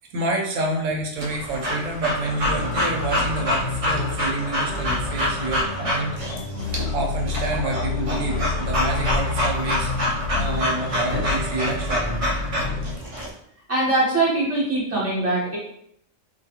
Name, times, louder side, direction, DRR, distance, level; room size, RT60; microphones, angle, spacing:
voice 1, 0.1-6.1 6.9-9.9 10.3-12.3, right 2 dB, 80° right, -1 dB, 1.0 m, -28 dB
Breathing / Dog, 1.2-13.3, left 1 dB, 60° right, 0.3 m, -27 dB
sound 1, 2.4-13.0, left 4 dB, 75° left, 1.0 m, -29 dB
voice 2, 13.7-15.6, right 2 dB, 15° right, -7 dB, 0.8 m, -22 dB
2.5 x 2.4 x 2.8 m, 0.72 s
omnidirectional pair, 1.3 m